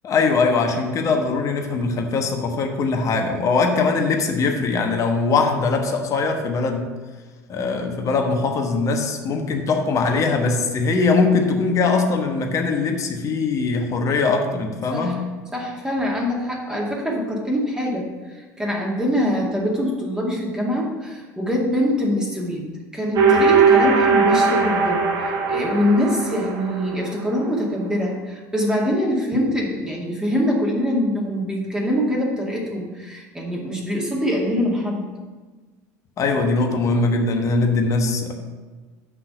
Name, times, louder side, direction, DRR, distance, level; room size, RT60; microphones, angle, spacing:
voice 1, 0.0-6.9 7.5-15.2 36.2-38.3, left 4 dB, 35° left, 4 dB, 1.2 m, -21 dB
voice 2, 15.5-22.7 22.9-35.0, left 1 dB, 10° right, -3 dB, 2.2 m, -24 dB
sound 1, 23.2-27.1, right 5 dB, 45° right, 1.3 m, -19 dB
6.2 x 5.8 x 6.9 m, 1.3 s
figure-of-eight pair, 70°, 9 cm